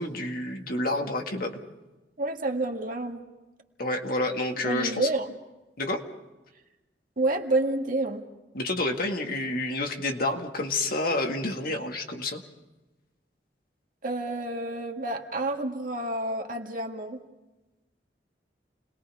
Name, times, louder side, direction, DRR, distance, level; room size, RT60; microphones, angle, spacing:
voice 1, 0.0-1.6 3.8-5.1 5.8-6.0 8.5-12.4, left 2 dB, 55° left, 3 dB, 2.0 m, -29 dB
voice 2, 2.2-3.2 4.6-5.3 7.2-8.2 14.0-17.2, right 2 dB, 50° right, 3 dB, 1.9 m, -29 dB
29.5 x 21.0 x 4.9 m, 1.1 s
head